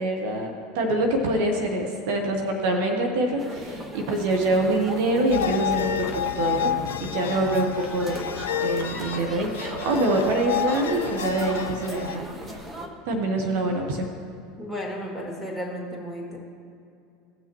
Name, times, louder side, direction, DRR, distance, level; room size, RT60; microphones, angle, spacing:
voice 1, 0.0-8.2 8.6-12.6 13.0-14.1, right 1 dB, 65° right, 3 dB, 1.0 m, -25 dB
sound 1, 3.4-12.9, right 1 dB, 25° right, 1.2 m, -37 dB
sound 2, 5.3-12.2, left 9 dB, 80° left, 0.4 m, -30 dB
voice 2, 14.6-16.4, equal, ahead, -2 dB, 2.4 m, -34 dB
17.0 x 6.1 x 3.0 m, 2.6 s
hypercardioid pair, 85°, 0 cm